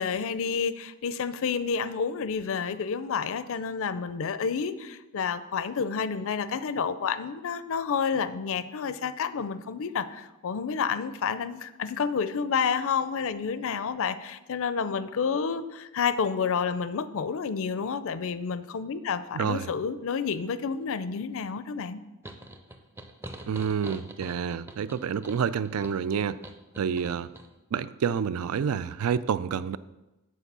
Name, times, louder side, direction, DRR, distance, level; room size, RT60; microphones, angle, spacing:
voice 1, 0.0-22.0, left 6 dB, 65° left, 13 dB, 0.5 m, -29 dB
voice 2, 19.3-19.7 23.5-26.4 26.8-27.3 27.7-29.8, right 7 dB, 70° right, 16 dB, 0.4 m, -28 dB
sound 1, 22.2-27.5, right 1 dB, 10° right, 0.6 m, -45 dB
8.5 x 4.5 x 6.7 m, 1.0 s
head